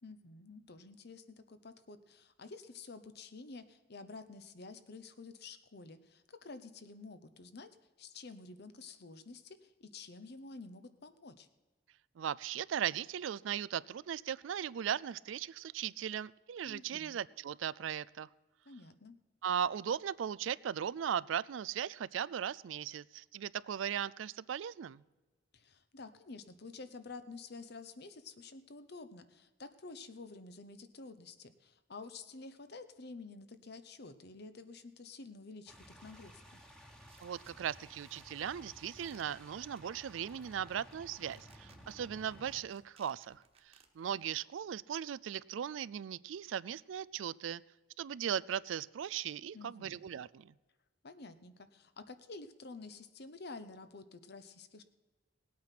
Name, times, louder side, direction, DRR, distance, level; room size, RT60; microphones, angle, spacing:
voice 1, 0.0-7.7 8.0-11.5 16.6-17.2 18.7-19.2 25.5-36.6 49.5-50.0 51.0-54.8, left 3 dB, 60° left, 11 dB, 0.9 m, -50 dB
voice 2, 12.2-18.3 19.4-25.0 37.2-47.6 48.0-50.5, right 9 dB, 80° right, 20 dB, 0.4 m, -38 dB
sound 1, 35.7-42.6, equal, 5° left, 1.4 m, -56 dB
sound 2, 37.1-44.3, right 5 dB, 35° right, 1.4 m, -67 dB
18.0 x 8.6 x 5.9 m, 1.2 s
head